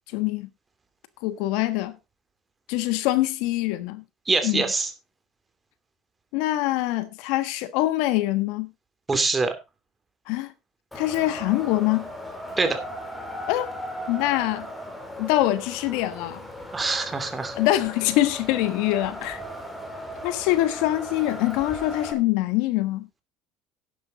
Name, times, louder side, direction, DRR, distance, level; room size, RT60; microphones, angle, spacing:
voice 1, 0.1-0.5 1.2-2.0 2.7-4.0 4.4-4.6 6.3-8.7 10.3-10.5 10.9-12.1 13.5-13.7 14.1-14.7 15.2-16.4 17.5-19.4 20.2-23.1, left 16 dB, 75° left, 1.2 m, -24 dB
voice 2, 4.3-4.9 9.1-9.5 12.6-12.8 16.7-17.6, right 3 dB, 20° right, 2.7 m, -24 dB
Wind, 10.9-22.1, equal, 10° left, 3.4 m, -37 dB
11.0 x 10.5 x 4.0 m
supercardioid pair, 115°, 0 cm